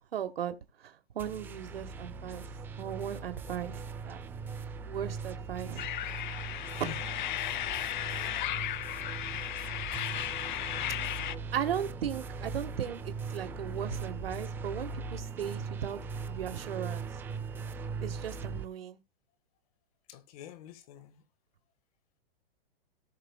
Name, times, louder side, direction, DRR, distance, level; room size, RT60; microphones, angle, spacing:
voice 1, 0.1-0.5 0.8-2.5 2.8-4.2 4.8-5.9 6.8-6.9 11.5-16.0 16.3-17.1 18.0-19.0, right 9 dB, 85° right, 1.5 m, -37 dB
sound 1, 1.2-18.6, right 4 dB, 5° right, 0.5 m, -40 dB
sound 2, 5.8-11.3, left 13 dB, 55° left, 0.8 m, -35 dB
voice 2, 6.7-7.1 16.5-16.6 20.1-21.2, left 11 dB, 40° left, 1.6 m, -46 dB
18.5 x 6.3 x 2.3 m
hypercardioid pair, 155°, 29 cm